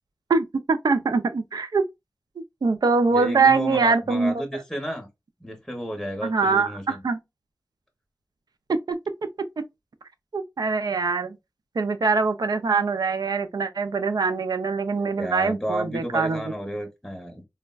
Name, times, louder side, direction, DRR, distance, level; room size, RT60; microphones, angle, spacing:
voice 1, 0.3-1.8 2.6-4.4 6.2-7.2 8.7-9.0 10.3-11.4 11.8-16.4, right 4 dB, 70° right, 0.4 m, -23 dB
voice 2, 3.1-5.1 5.4-7.0 15.1-17.4, equal, ahead, 0.7 m, -32 dB
3.3 x 2.1 x 2.2 m
wide cardioid pair, 80°, 7 cm